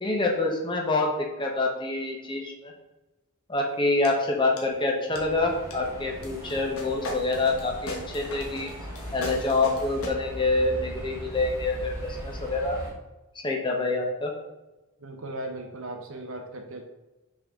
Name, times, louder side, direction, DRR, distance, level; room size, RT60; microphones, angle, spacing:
voice 1, 0.0-2.7 3.5-8.7 9.1-12.8 13.4-14.3, left 2 dB, 20° left, 0 dB, 0.9 m, -26 dB
sound 1, 4.0-4.1 4.6-4.8 5.1-5.2 5.7-5.8 6.2-10.1, left 1 dB, 75° left, 1.1 m, -38 dB
sound 2, 5.1-12.9, equal, 15° right, 1.6 m, -39 dB
voice 2, 15.0-16.9, right 1 dB, 65° right, 4 dB, 0.9 m, -37 dB
6.3 x 4.1 x 3.6 m, 1.0 s
head